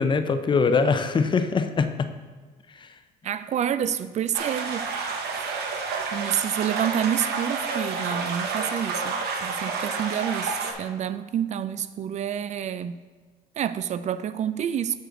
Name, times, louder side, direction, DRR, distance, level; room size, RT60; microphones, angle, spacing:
voice 1, 0.0-2.1 2.8-2.9, left 4 dB, 30° left, 0.5 m, -22 dB
voice 2, 3.2-4.9 5.3-5.5 6.1-9.2 9.4-13.0 13.6-15.0, right 9 dB, 45° right, 0.4 m, -28 dB
sound 1, 4.3-10.7, right 4 dB, 70° right, 1.0 m, -29 dB
8.2 x 6.1 x 3.8 m
cardioid pair, 110°, 17 cm